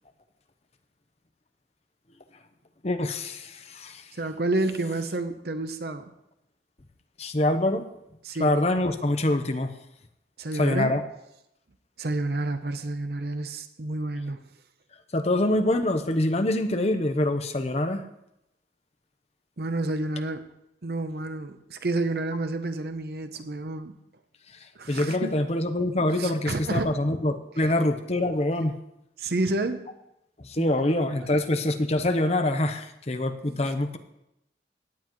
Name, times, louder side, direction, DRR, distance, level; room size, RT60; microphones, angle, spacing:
voice 1, 2.8-4.1 7.2-7.8 8.4-9.7 10.5-11.0 15.1-18.0 24.9-28.8 30.4-34.0, left 1 dB, 35° left, 8 dB, 0.8 m, -25 dB
voice 2, 4.1-6.0 8.2-8.6 10.4-11.0 12.0-14.4 19.6-20.5 20.8-23.9 24.8-25.4 26.2-27.0 29.2-29.9 30.6-30.7 33.5-33.7, right 2 dB, 60° right, 9 dB, 0.8 m, -30 dB
16.5 x 9.7 x 3.1 m, 0.83 s
head